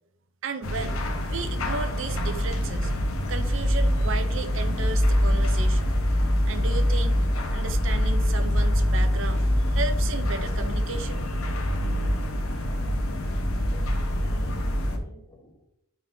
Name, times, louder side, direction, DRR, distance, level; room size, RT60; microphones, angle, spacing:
voice 1, 0.4-1.0 1.3-2.9 3.3-5.9 6.5-7.3 7.5-11.2, right 4 dB, 55° right, 9 dB, 0.5 m, -34 dB
sound 1, 0.6-15.0, equal, 70° left, 0.9 m, -24 dB
voice 2, 13.7-15.6, equal, 15° left, -1 dB, 1.2 m, -50 dB
9.3 x 3.9 x 2.6 m, 0.81 s
head